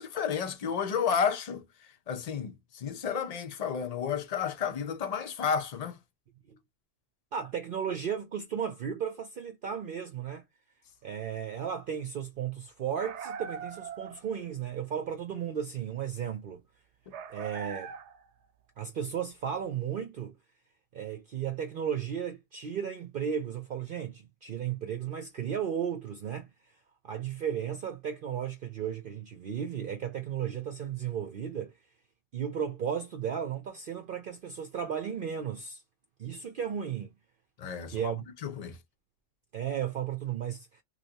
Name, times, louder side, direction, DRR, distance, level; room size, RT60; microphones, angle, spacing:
voice 1, 0.0-6.0 37.6-38.1 38.4-38.8, left 7 dB, 45° left, 0.5 m, -32 dB
voice 2, 7.3-10.4 11.0-16.6 17.3-17.9 18.8-20.3 20.9-26.5 27.0-31.7 32.3-35.8 36.2-37.1 37.9-38.3 39.5-40.8, right 8 dB, 55° right, 0.7 m, -34 dB
sound 1, 13.0-14.4 17.1-18.3, right 7 dB, 75° right, 0.9 m, -41 dB
3.2 x 2.7 x 2.7 m
omnidirectional pair, 1.3 m